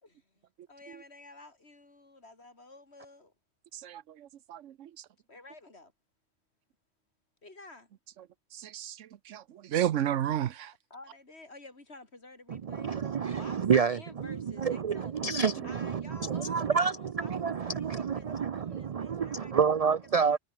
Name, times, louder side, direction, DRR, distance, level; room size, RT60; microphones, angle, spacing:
voice 1, 0.0-3.3 5.3-5.9 7.4-7.9 10.9-12.9 13.3-15.1 15.6-20.0 20.2-20.4, left 2 dB, 60° left, 4.1 m, -52 dB
voice 2, 3.7-4.9 8.5-10.7, right 11 dB, 85° right, 1.1 m, -32 dB
voice 3, 12.5-20.4, right 6 dB, 50° right, 0.4 m, -29 dB
omnidirectional pair, 1.2 m